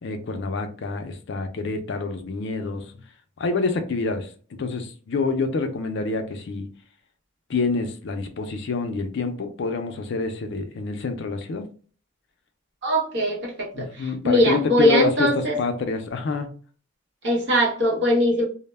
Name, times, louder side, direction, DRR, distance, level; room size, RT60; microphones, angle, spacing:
voice 1, 0.0-3.0 3.4-4.3 4.6-6.7 7.5-11.7 13.7-16.5, left 3 dB, 55° left, 7 dB, 0.4 m, -27 dB
voice 2, 12.8-13.9 14.2-15.6 17.2-18.4, equal, 55° right, -3 dB, 0.8 m, -21 dB
2.1 x 2.0 x 3.2 m, 0.40 s
head